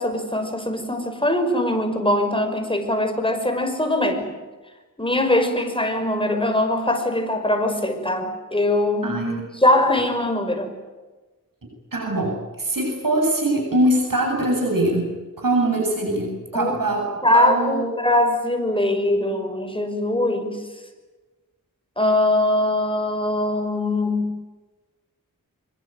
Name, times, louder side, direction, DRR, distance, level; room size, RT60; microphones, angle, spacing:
voice 1, 0.0-4.3 5.0-9.1 9.6-10.7 16.5-16.8 17.2-20.6 22.0-24.3, left 1 dB, 15° left, 6 dB, 5.5 m, -21 dB
voice 2, 9.0-9.5 11.9-17.8, right 1 dB, 75° right, 1 dB, 7.6 m, -23 dB
25.0 x 22.0 x 9.2 m, 1.2 s
wide cardioid pair, 55°, 34 cm